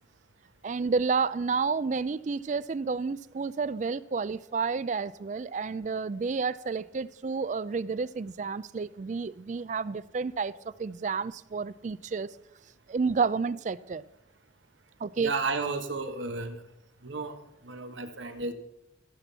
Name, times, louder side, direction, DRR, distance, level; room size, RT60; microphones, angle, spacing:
voice 1, 0.6-10.5 10.8-12.3 12.9-14.0 15.0-15.3, right 5 dB, 40° right, 0.3 m, -30 dB
voice 2, 15.2-16.6 17.0-17.4 17.6-18.5, right 3 dB, 80° right, 1.3 m, -32 dB
15.0 x 6.1 x 6.8 m
head